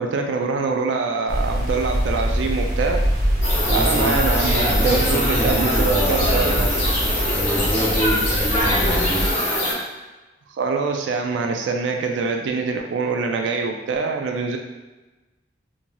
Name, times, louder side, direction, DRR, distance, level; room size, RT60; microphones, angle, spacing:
voice 1, 0.0-3.0 3.7-6.7 10.6-14.6, right 4 dB, 70° right, 3 dB, 0.3 m, -24 dB
sound 1, 1.3-9.3, equal, 55° right, 0.7 m, -24 dB
sound 2, 3.4-9.7, left 1 dB, 40° left, 1.0 m, -23 dB
voice 2, 3.6-4.2 4.6-6.8 7.3-9.3, equal, 10° left, -4 dB, 0.5 m, -26 dB
3.0 x 2.6 x 2.3 m, 1.2 s
head